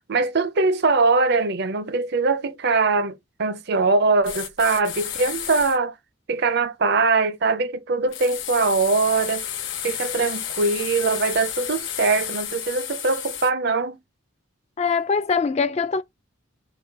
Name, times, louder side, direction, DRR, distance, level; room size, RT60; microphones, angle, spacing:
voice 1, 0.1-5.9 6.3-9.5 9.8-14.0, right 3 dB, 50° right, 0.5 m, -22 dB
sound 1, 4.2-5.8 8.1-13.5, left 10 dB, 60° left, 0.9 m, -32 dB
voice 2, 14.8-16.0, left 5 dB, 30° left, 0.3 m, -22 dB
4.0 x 2.2 x 4.5 m
head